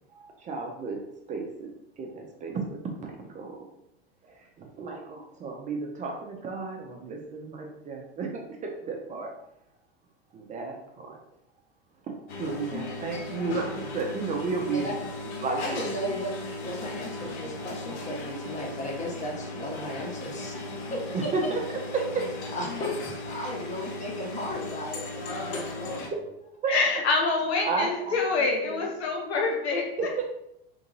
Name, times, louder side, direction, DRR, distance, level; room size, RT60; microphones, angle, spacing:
voice 1, 0.2-1.0 1.3-1.7 2.0-3.6 4.2-9.3 10.3-11.2 12.1-15.0 15.4-15.9 21.1-21.6 21.9-22.2 26.1-26.2 26.6-26.8 27.6-28.8 30.0-30.2, right 4 dB, 25° right, 1 dB, 0.4 m, -33 dB
sound 1, 12.3-26.1, left 2 dB, 50° left, 0.7 m, -37 dB
voice 2, 15.5-20.6 20.9-21.0 22.5-25.9 29.7-29.8, left 1 dB, 20° left, -2 dB, 1.0 m, -35 dB
voice 3, 26.7-29.8, left 4 dB, 80° left, -1 dB, 0.9 m, -26 dB
3.0 x 2.6 x 2.6 m, 0.79 s
hypercardioid pair, 90°, 32 cm